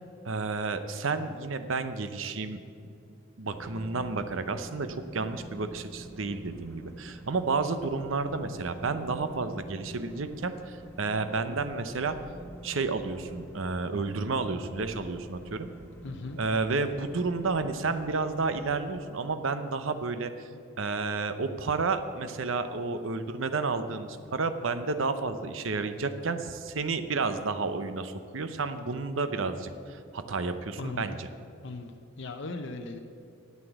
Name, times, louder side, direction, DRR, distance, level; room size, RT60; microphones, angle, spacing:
voice 1, 0.2-2.6 3.4-12.1 12.6-15.7 16.4-20.5 20.8-31.3, right 4 dB, 70° right, 10 dB, 0.7 m, -31 dB
sound 1, 3.5-19.0, right 1 dB, 10° left, 1.0 m, -47 dB
voice 2, 16.0-16.4 30.8-31.1 31.6-31.9 32.2-33.0, left 3 dB, 60° left, 4 dB, 0.7 m, -37 dB
9.5 x 8.4 x 8.0 m, 2.6 s
head